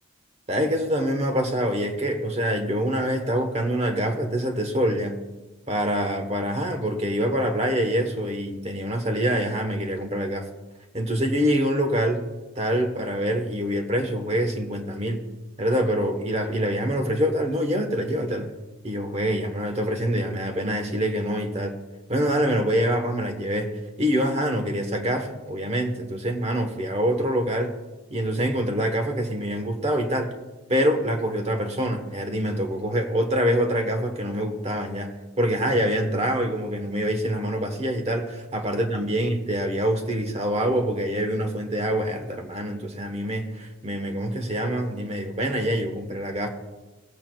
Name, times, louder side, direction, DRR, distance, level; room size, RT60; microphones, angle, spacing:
voice 1, 0.5-5.1 5.7-10.5 10.9-12.3 12.6-15.2 15.6-18.5 18.8-21.7 22.1-23.7 24.0-27.7 28.1-30.3 30.7-35.1 35.4-46.5, equal, 30° right, 5 dB, 1.1 m, -25 dB
17.5 x 8.4 x 2.4 m, 1.1 s
head